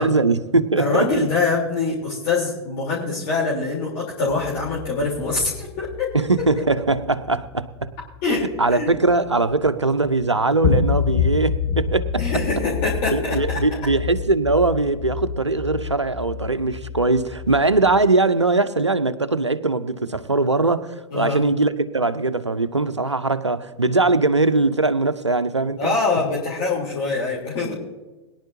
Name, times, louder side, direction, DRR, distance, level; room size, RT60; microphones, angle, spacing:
voice 1, 0.0-1.3 6.1-7.9 8.3-12.2 13.1-26.0, right 3 dB, 85° right, 0.7 m, -21 dB
voice 2, 0.8-6.2 8.2-8.9 12.2-13.8 21.1-21.5 25.8-27.7, left 3 dB, 45° left, 3.7 m, -24 dB
sound 1, 4.3-9.7 10.0-10.2 10.6-18.0, left 6 dB, 60° left, 5.0 m, -28 dB
22.0 x 11.0 x 2.8 m
figure-of-eight pair, 95°, 15 cm